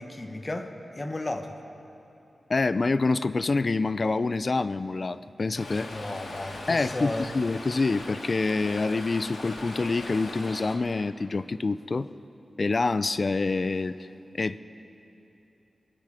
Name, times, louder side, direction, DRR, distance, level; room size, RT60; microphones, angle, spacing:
voice 1, 0.0-1.6 5.9-7.3, left 2 dB, 25° left, 5 dB, 1.0 m, -34 dB
voice 2, 2.5-5.9 6.7-12.1 12.6-13.9 14.4-14.6, left 3 dB, 45° left, 14 dB, 0.4 m, -26 dB
Stream, 5.5-10.8, left 2 dB, 90° left, 1.9 m, -40 dB
23.5 x 9.5 x 4.9 m, 2.9 s
wide cardioid pair, 120°, 0 cm